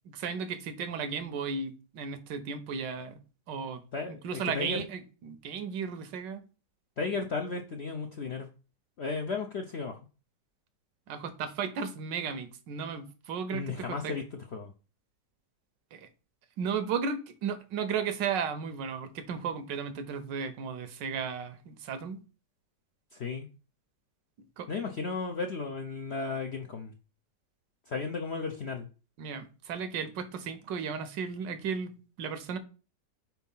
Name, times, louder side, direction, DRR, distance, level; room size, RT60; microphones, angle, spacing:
voice 1, 0.0-3.2 3.5-3.8 4.1-6.4 11.1-14.2 15.9-16.1 16.6-22.2 24.6-24.7 29.2-32.6, right 6 dB, 85° right, 10 dB, 1.5 m, -35 dB
voice 2, 3.9-4.8 7.0-8.5 9.0-10.0 13.5-14.7 23.1-23.5 24.7-26.9 27.9-28.9, left 4 dB, 65° left, 4 dB, 0.6 m, -34 dB
4.5 x 4.4 x 5.5 m, 0.35 s
omnidirectional pair, 1.9 m